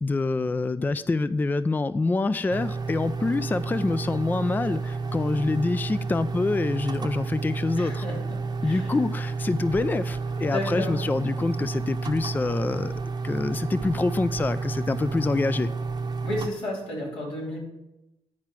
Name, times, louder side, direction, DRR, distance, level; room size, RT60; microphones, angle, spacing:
voice 1, 0.0-8.0 8.6-12.9 13.2-15.7, left 3 dB, 20° left, 14 dB, 0.3 m, -26 dB
sound 1, 2.5-16.5, right 4 dB, 50° right, 0.8 m, -31 dB
voice 2, 7.8-9.0 10.4-11.0 16.2-17.6, left 1 dB, 85° left, -4 dB, 3.2 m, -33 dB
10.5 x 4.6 x 5.9 m, 0.96 s
cardioid pair, 65°, 10 cm